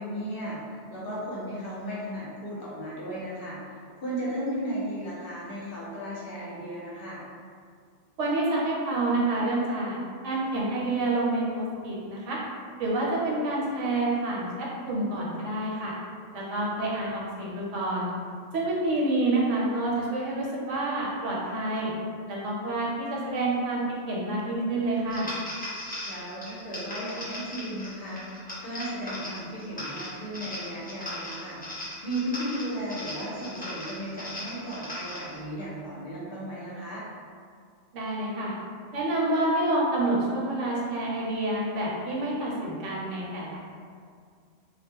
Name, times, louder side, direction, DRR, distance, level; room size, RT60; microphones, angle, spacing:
voice 1, 0.0-7.2 16.5-16.7 26.1-31.6 32.0-37.0, equal, 55° left, -7 dB, 0.7 m, -35 dB
voice 2, 8.2-10.0 10.2-12.4 12.8-15.9 16.3-18.1 18.5-21.9 22.3-25.3 37.9-38.5 38.9-43.6, right 2 dB, 80° right, -4 dB, 1.0 m, -28 dB
sound 1, 25.1-35.4, left 1 dB, 10° left, 0.4 m, -38 dB
2.3 x 2.1 x 3.5 m, 2.1 s
omnidirectional pair, 1.3 m